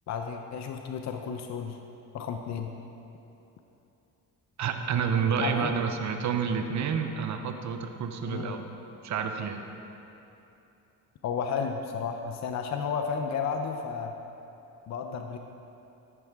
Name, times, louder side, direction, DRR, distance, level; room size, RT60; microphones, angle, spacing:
voice 1, 0.1-1.8 2.1-2.7 5.4-5.7 8.3-8.6 11.2-14.1 14.9-15.4, left 6 dB, 50° left, 4 dB, 0.8 m, -32 dB
voice 2, 4.6-8.6 9.0-9.7, right 6 dB, 55° right, 5 dB, 1.0 m, -29 dB
13.5 x 11.0 x 3.7 m, 2.9 s
cardioid pair, 105°, 34 cm